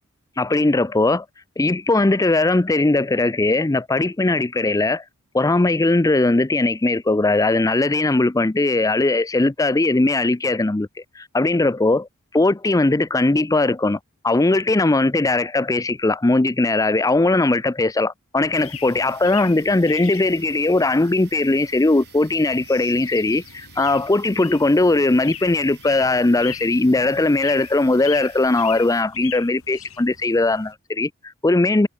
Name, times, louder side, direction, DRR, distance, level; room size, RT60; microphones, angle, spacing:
voice 1, 0.4-1.2 1.6-5.0 5.3-12.1 12.3-14.0 14.2-31.9, left 2 dB, 15° left, 0.5 m, -19 dB
sound 1, 18.4-30.7, left 10 dB, 70° left, 3.8 m, -41 dB
sound 2, 18.5-29.0, right 11 dB, 50° right, 6.0 m, -50 dB
head